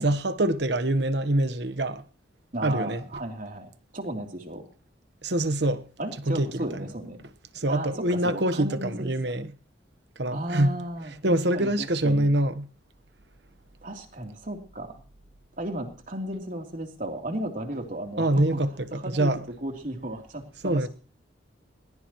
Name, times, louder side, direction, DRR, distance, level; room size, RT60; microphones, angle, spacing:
voice 1, 0.0-2.0 2.6-3.0 5.2-5.9 6.3-6.7 7.5-9.5 10.2-10.8 11.2-12.7 18.2-19.4 20.6-20.9, right 1 dB, 65° right, 1.2 m, -25 dB
voice 2, 2.5-4.7 6.0-7.2 7.7-9.3 10.3-12.3 13.8-14.9 15.6-18.6 18.9-20.9, right 1 dB, 45° right, 3.3 m, -35 dB
21.0 x 20.0 x 3.1 m
head